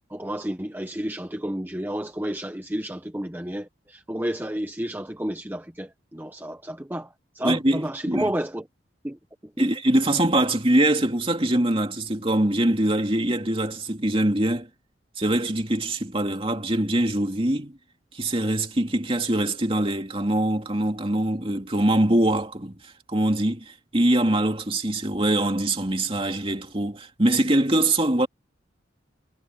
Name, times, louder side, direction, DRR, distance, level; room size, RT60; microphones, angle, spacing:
voice 1, 0.1-8.6 9.0-9.2 9.6-9.8, right 1 dB, 10° right, 0.9 m, -31 dB
voice 2, 7.4-8.3 9.6-14.7 15.2-17.8 18.1-22.8 23.1-28.3, right 1 dB, 30° right, 2.7 m, -23 dB
head